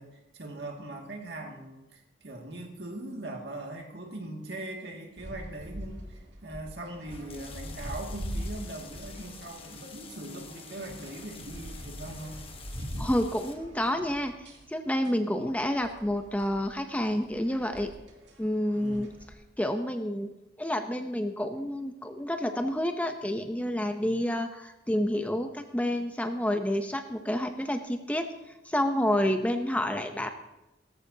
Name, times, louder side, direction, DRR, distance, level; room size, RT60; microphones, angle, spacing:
voice 1, 0.0-12.4 18.7-19.0 24.0-24.2, right 2 dB, 65° right, 1 dB, 2.1 m, -41 dB
sound 1, 5.2-19.3, equal, 80° right, 2.4 m, -43 dB
sound 2, 7.0-13.5, left 5 dB, 30° left, 1.1 m, -48 dB
voice 2, 13.0-17.9 18.4-19.1 19.6-20.3 20.6-28.3 28.6-30.3, left 1 dB, 10° left, 6 dB, 0.6 m, -29 dB
17.0 x 14.0 x 2.8 m, 0.97 s
head